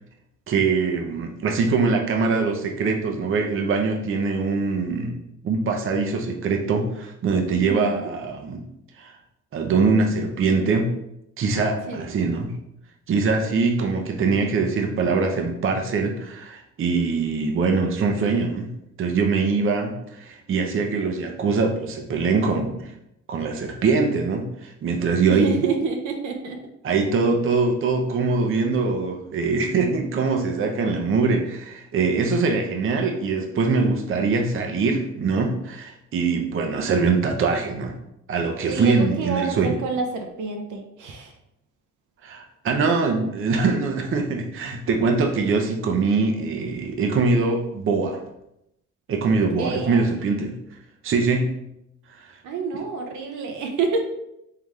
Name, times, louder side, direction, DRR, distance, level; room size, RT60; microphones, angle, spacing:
voice 1, 0.5-5.2 5.4-8.6 9.0-9.2 9.5-11.0 11.4-12.6 13.1-18.7 19.0-22.9 23.3-25.6 26.8-37.9 38.3-39.7 42.2-48.2 49.1-50.5 51.0-51.6 52.2-52.4, right 4 dB, 45° right, 3 dB, 0.6 m, -23 dB
voice 2, 7.5-8.1 11.9-12.2 25.3-26.6 38.6-41.3 49.6-50.0 52.4-54.0, right 4 dB, 75° right, 3 dB, 0.7 m, -28 dB
3.8 x 3.3 x 3.1 m, 0.82 s
cardioid pair, 90°, 30 cm